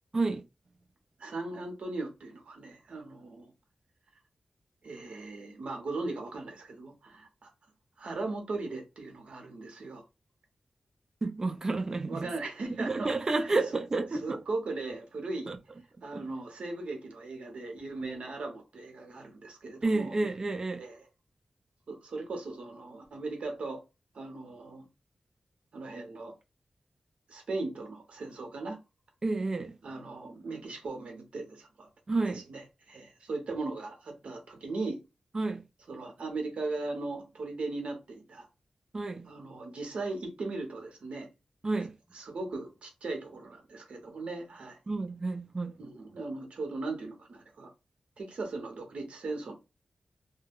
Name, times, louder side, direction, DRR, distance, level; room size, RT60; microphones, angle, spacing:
voice 1, 1.2-3.5 4.8-7.5 8.0-10.0 12.1-13.5 14.1-15.5 16.0-20.1 20.8-21.0 21.9-23.8 24.1-24.9 25.7-26.3 27.3-28.8 29.8-31.9 32.3-35.0 35.9-38.5 39.2-41.3 42.1-44.8 45.8-47.7 48.2-49.5, right 3 dB, 70° right, 0.8 m, -38 dB
voice 2, 11.2-12.3 12.7-14.4 15.5-15.6 16.1-16.3 19.8-20.8 29.2-29.7 32.1-32.4 35.3-35.6 38.9-39.3 41.6-42.0 44.9-45.7, right 3 dB, 30° right, 0.3 m, -30 dB
2.3 x 2.1 x 3.4 m
wide cardioid pair, 170°, 2 cm